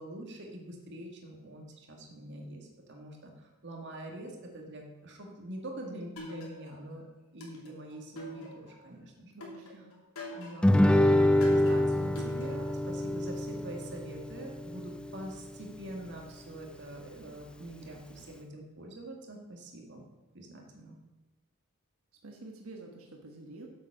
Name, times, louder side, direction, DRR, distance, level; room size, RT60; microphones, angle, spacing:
voice 1, 0.0-7.0 7.3-9.3 10.4-20.0 20.3-21.0, right 1 dB, 55° right, 1 dB, 1.9 m, -44 dB
sound 1, 6.2-6.9 7.4-8.9 9.4-10.8 11.4-12.8, left 1 dB, 85° left, 2.8 m, -45 dB
voice 2, 9.3-9.9 22.2-23.7, right 2 dB, 75° right, 1 dB, 1.4 m, -48 dB
Guitar, 10.6-15.7, left 1 dB, 5° left, 0.4 m, -26 dB
8.4 x 7.3 x 6.6 m, 1.1 s
head